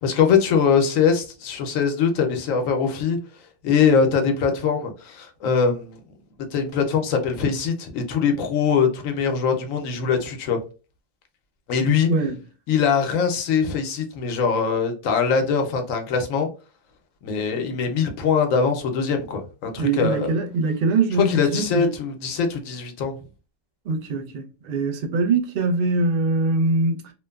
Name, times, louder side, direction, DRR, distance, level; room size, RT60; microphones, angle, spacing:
voice 1, 0.0-3.2 3.6-6.0 6.5-10.6 11.7-12.1 12.7-16.5 17.2-20.3 21.2-23.2, left 6 dB, 80° left, 1.1 m, -22 dB
voice 2, 12.1-12.4 19.8-21.9 23.9-27.1, right 3 dB, 55° right, 0.7 m, -23 dB
3.0 x 2.2 x 2.2 m
omnidirectional pair, 1.4 m